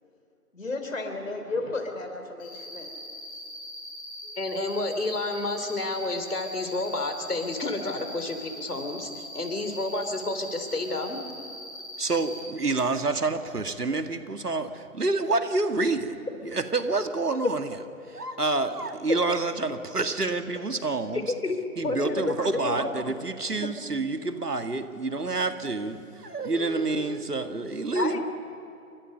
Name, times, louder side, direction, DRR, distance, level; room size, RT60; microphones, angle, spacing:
voice 1, 0.5-3.0 4.2-4.4, left 3 dB, 55° left, 5 dB, 4.2 m, -33 dB
Cricket, 2.4-12.4, equal, 5° left, 1.8 m, -41 dB
voice 2, 4.4-11.2 20.2-20.3 21.4-21.6 21.8-22.3 22.6-22.9 27.9-28.2, left 2 dB, 75° left, 7 dB, 3.8 m, -30 dB
voice 3, 12.0-17.8 18.1-21.3 21.8-28.2, right 3 dB, 80° right, 8 dB, 2.2 m, -28 dB
29.5 x 24.5 x 5.5 m, 2.7 s
figure-of-eight pair, 170°, 46 cm